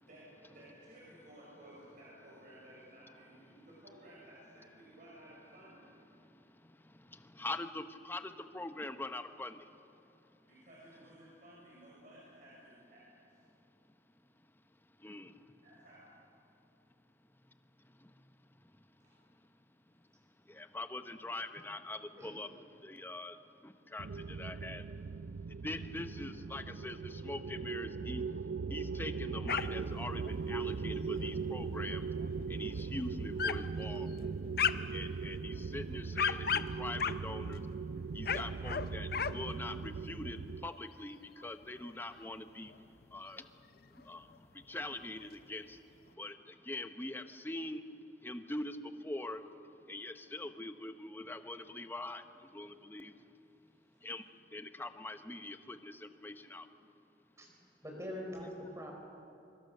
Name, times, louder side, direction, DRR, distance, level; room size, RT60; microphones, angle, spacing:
voice 1, 0.0-5.9 10.5-13.2 15.6-16.2 19.0-19.1, right 1 dB, 50° right, -6 dB, 6.2 m, -56 dB
voice 2, 6.2-9.7 15.0-15.4 18.0-18.1 18.6-18.7 20.5-22.5 22.8-23.4 23.6-24.8 25.6-28.4 28.7-32.0 32.5-34.2 34.9-37.6 38.1-42.7 43.1-43.5 43.9-45.8 46.2-47.8 48.2-49.4 49.9-53.2 54.0-54.2 54.5-56.7, left 2 dB, 10° left, 9 dB, 0.9 m, -43 dB
sound 1, 24.0-40.7, right 5 dB, 80° right, 0.5 m, -39 dB
sound 2, 29.5-30.0 30.2-30.3 31.0-31.5 32.2-32.3 32.8-32.9 33.4-33.7 34.1-35.0 35.6-37.7 38.1-39.4 39.7-40.0 40.3-40.4 40.7-40.8 41.4-42.3 42.6-42.7 43.0-43.1 44.0-44.1 44.3-44.4 44.6-45.3, left 7 dB, 60° left, 0.7 m, -35 dB
voice 3, 57.8-58.9, equal, 15° right, 0 dB, 4.8 m, -43 dB
24.5 x 24.0 x 6.6 m, 2.7 s
head